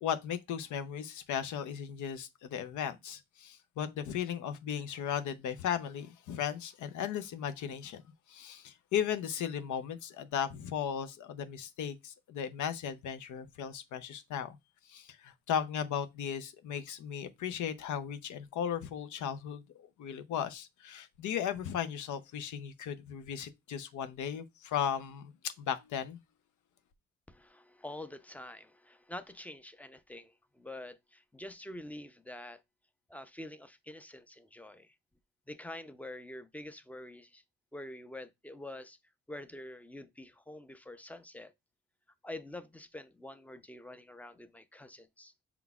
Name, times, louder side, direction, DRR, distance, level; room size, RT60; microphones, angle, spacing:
voice 1, 0.0-8.0 8.3-14.6 14.8-25.3 25.6-26.2, left 8 dB, 75° left, 0.6 m, -36 dB
voice 2, 27.3-32.6 33.1-34.9 35.5-37.4 37.7-39.0 39.3-41.5 42.2-45.3, left 1 dB, 5° left, 0.5 m, -46 dB
5.7 x 3.8 x 2.3 m
cardioid pair, 90°, 30 cm